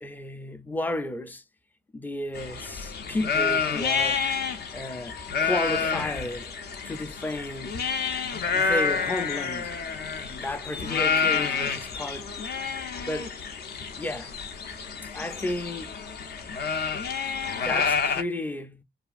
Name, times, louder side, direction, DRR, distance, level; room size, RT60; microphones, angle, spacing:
voice 1, 0.0-1.4 1.9-4.4 4.7-6.5 6.8-7.9 8.5-9.7 10.2-12.4 13.0-13.4 14.0-14.4 15.1-16.0 17.6-18.8, left 1 dB, 10° left, 0.4 m, -33 dB
sound 1, 2.3-18.2, left 5 dB, 55° left, 0.6 m, -29 dB
2.7 x 2.5 x 2.3 m
cardioid pair, 90°, 20 cm